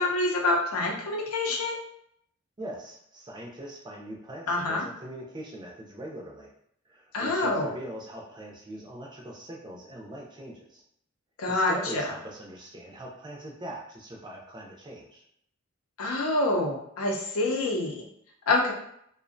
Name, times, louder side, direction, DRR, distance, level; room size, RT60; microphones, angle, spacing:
voice 1, 0.0-1.8 4.5-4.8 7.1-7.7 11.4-12.0 16.0-18.1 18.5-18.7, left 2 dB, 80° left, 0 dB, 0.6 m, -26 dB
voice 2, 2.6-6.5 6.9-10.8 11.5-15.2, right 1 dB, 20° right, -1 dB, 0.4 m, -41 dB
2.5 x 2.1 x 2.5 m, 0.70 s
head